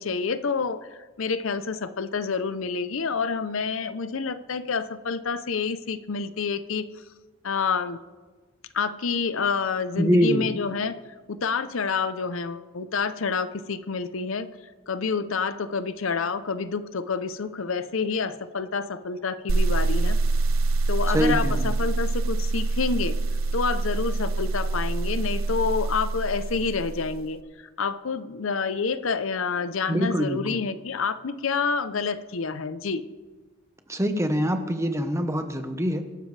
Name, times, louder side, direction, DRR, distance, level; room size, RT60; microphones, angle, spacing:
voice 1, 0.0-7.1 7.4-8.0 8.7-11.0 11.3-14.5 14.9-20.2 20.9-23.2 23.5-33.0, left 5 dB, 75° left, 12 dB, 0.7 m, -28 dB
voice 2, 10.0-10.5 21.1-21.7 29.9-30.4 33.9-36.0, equal, 15° right, 7 dB, 1.1 m, -24 dB
sound 1, 19.5-27.3, right 3 dB, 75° right, 0.7 m, -25 dB
23.0 x 12.5 x 3.3 m, 1.3 s
head